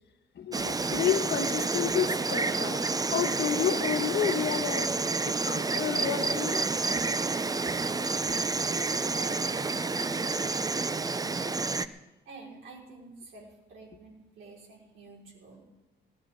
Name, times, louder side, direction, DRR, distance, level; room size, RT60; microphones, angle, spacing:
voice 1, 0.3-2.8 3.1-6.6, left 8 dB, 60° left, 7 dB, 1.5 m, -30 dB
Insect, 0.5-11.9, right 3 dB, 20° right, 0.6 m, -29 dB
voice 2, 9.0-11.7 12.2-15.6, right 4 dB, 80° right, -2 dB, 5.1 m, -48 dB
20.5 x 13.0 x 3.8 m, 1.1 s
cardioid pair, 90°, 20 cm